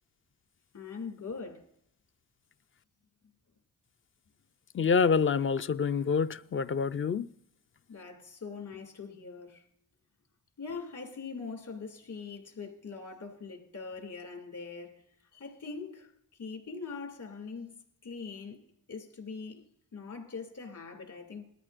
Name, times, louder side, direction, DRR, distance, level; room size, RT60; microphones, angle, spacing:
voice 1, 0.7-1.7 7.9-9.6 10.6-15.0 15.3-16.1 16.4-17.7 18.0-18.6 18.9-19.7 19.9-21.4, left 4 dB, 65° left, 2.4 m, -42 dB
voice 2, 4.7-7.3, left 6 dB, 40° left, 0.4 m, -27 dB
19.5 x 13.5 x 2.5 m
wide cardioid pair, 100°, 33 cm